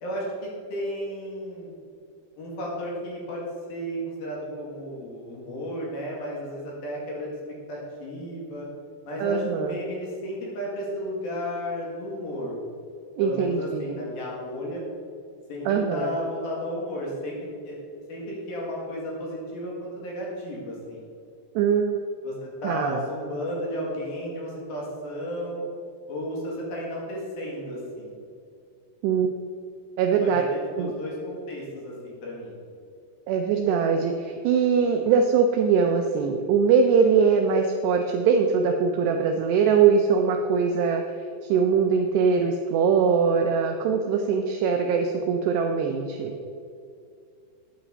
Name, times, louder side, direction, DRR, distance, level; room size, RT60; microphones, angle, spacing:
voice 1, 0.0-1.7 2.4-3.4 3.7-7.3 7.7-8.7 9.1-12.6 13.2-14.8 15.5-17.8 18.1-21.0 22.2-25.7 26.1-28.2 30.2-32.6, equal, 55° left, -4 dB, 3.6 m, -33 dB
voice 2, 9.2-9.8 13.2-14.0 15.7-16.2 21.6-22.0 22.6-23.0 29.0-29.3 30.0-30.4 30.8-30.9 33.3-41.0 41.4-46.4, right 6 dB, 85° right, 4 dB, 2.4 m, -22 dB
11.5 x 9.6 x 4.0 m, 2.4 s
omnidirectional pair, 5.5 m